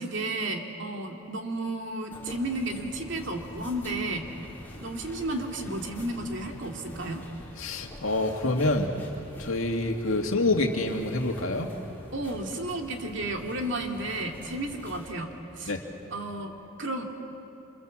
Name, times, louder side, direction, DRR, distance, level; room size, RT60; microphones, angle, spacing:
voice 1, 0.0-4.3 4.8-7.2 12.1-15.7 16.1-17.0, right 1 dB, 60° right, 2 dB, 2.5 m, -33 dB
sound 1, 2.1-15.1, equal, 10° left, 4.5 m, -45 dB
voice 2, 7.6-8.9 9.4-11.7 15.7-15.8, left 2 dB, 80° left, 3 dB, 2.3 m, -27 dB
28.0 x 26.5 x 7.5 m, 3.0 s
head